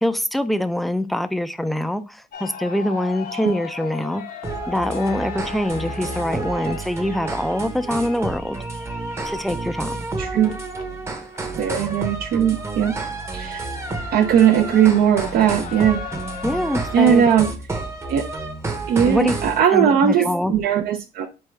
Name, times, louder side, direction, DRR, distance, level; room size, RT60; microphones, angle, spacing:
voice 1, 0.0-4.2 4.7-8.6 9.2-10.0 16.4-17.2 19.1-19.3 19.7-20.5, left 1 dB, ahead, 0.3 m, -24 dB
sound 1, 2.3-17.4, left 7 dB, 55° left, 0.6 m, -39 dB
sound 2, 4.4-19.6, right 3 dB, 15° right, 0.8 m, -30 dB
voice 2, 10.2-10.6 11.6-12.9 13.3-13.7 14.1-16.0 16.9-17.5 18.1-18.3 18.9-21.3, right 9 dB, 65° right, 0.5 m, -18 dB
4.0 x 3.5 x 3.2 m
cardioid pair, 110°, 17 cm